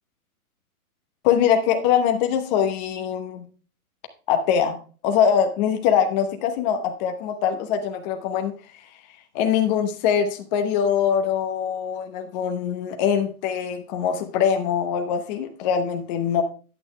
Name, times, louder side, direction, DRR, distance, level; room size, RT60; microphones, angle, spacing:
voice 1, 1.2-3.5 4.3-4.8 5.0-8.5 9.3-16.4, left 8 dB, 30° left, 6 dB, 0.9 m, -23 dB
8.9 x 8.4 x 3.2 m, 0.38 s
hypercardioid pair, 140°, 44 cm